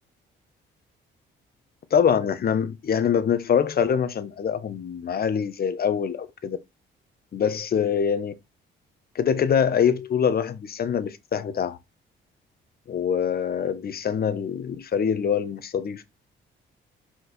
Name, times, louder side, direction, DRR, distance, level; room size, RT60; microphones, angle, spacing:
voice 1, 1.9-6.6 7.3-8.3 9.1-11.8 12.9-16.0, left 7 dB, 50° left, 1.3 m, -24 dB
5.8 x 5.3 x 4.2 m
cardioid pair, 90°, 20 cm